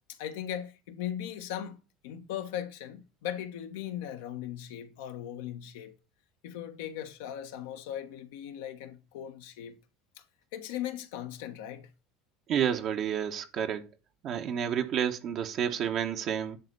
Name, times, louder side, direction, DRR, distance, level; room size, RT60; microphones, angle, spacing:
voice 1, 0.1-1.8 2.0-5.9 6.4-9.8 10.2-10.3 10.5-11.9, left 10 dB, 75° left, 1.3 m, -38 dB
voice 2, 12.5-13.9 14.2-16.6, right 8 dB, 55° right, 1.3 m, -30 dB
10.5 x 4.2 x 6.8 m
hypercardioid pair, 75°, 0 cm